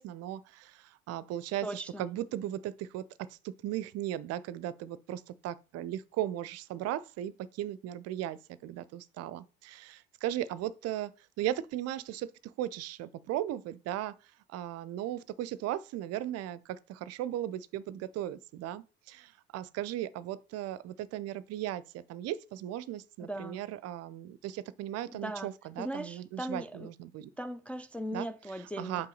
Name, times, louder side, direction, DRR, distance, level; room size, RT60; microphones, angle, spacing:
voice 1, 0.0-11.1 11.4-12.3 12.6-14.1 14.5-27.3 28.1-28.3 28.8-29.1, right 12 dB, 50° right, 0.5 m, -37 dB
voice 2, 1.6-2.1 23.2-23.6 25.1-25.5 25.8-26.9 27.4-29.1, equal, 5° left, 0.3 m, -39 dB
5.4 x 5.1 x 3.9 m
figure-of-eight pair, 55°, 33 cm